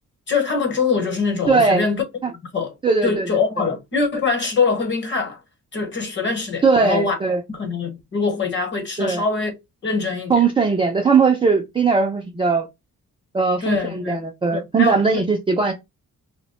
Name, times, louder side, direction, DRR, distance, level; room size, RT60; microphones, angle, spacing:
voice 1, 0.3-2.0 2.5-2.7 3.0-5.4 5.7-7.2 7.5-9.5 9.8-10.4 13.6-14.2 14.5-15.2, left 4 dB, 35° left, 1.0 m, -23 dB
voice 2, 1.5-1.9 2.2-2.3 2.8-3.3 6.6-7.4 9.0-9.2 10.3-12.7 13.3-15.7, right 4 dB, 15° right, 0.4 m, -19 dB
2.8 x 2.1 x 4.1 m
cardioid pair, 160°, 33 cm